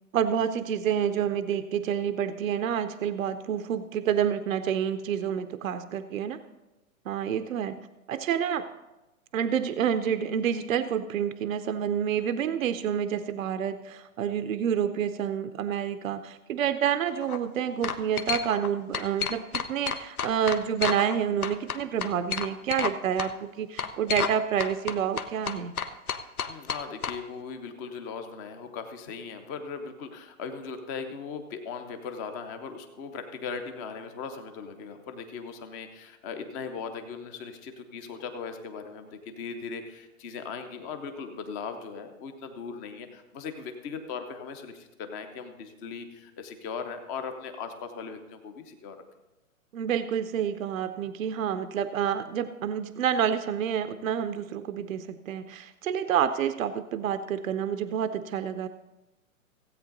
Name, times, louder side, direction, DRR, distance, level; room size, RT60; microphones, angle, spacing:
voice 1, 0.1-6.4 7.1-8.7 9.3-25.8 49.7-58.7, right 8 dB, 70° right, 11 dB, 0.7 m, -28 dB
sound 1, 17.1-17.4 17.8-18.7 18.9-21.2 21.4-22.9 23.2-23.3 23.8-24.3 24.6-27.2, left 7 dB, 90° left, 1.0 m, -31 dB
voice 2, 26.4-49.0, left 5 dB, 15° left, 7 dB, 0.5 m, -38 dB
16.0 x 8.4 x 3.9 m, 1.0 s
hypercardioid pair, 140°, 42 cm